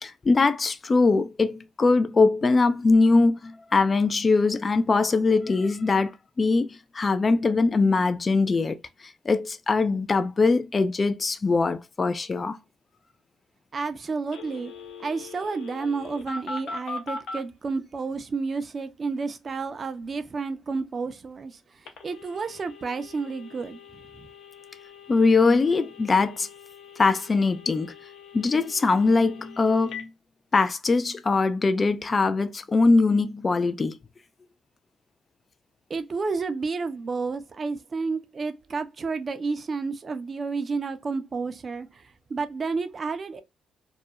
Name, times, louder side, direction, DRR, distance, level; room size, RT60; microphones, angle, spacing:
voice 1, 0.0-8.8 9.0-12.6 25.1-26.5 27.0-27.9 28.3-30.1 30.5-34.0, left 3 dB, 30° left, 0.3 m, -22 dB
voice 2, 13.7-14.7 15.0-24.3 35.9-43.4, right 4 dB, 40° right, 0.4 m, -31 dB
Telephone, 14.3-17.4 21.9-30.0, left 3 dB, 80° left, 0.7 m, -41 dB
2.4 x 2.2 x 2.6 m
cardioid pair, 90°, 0 cm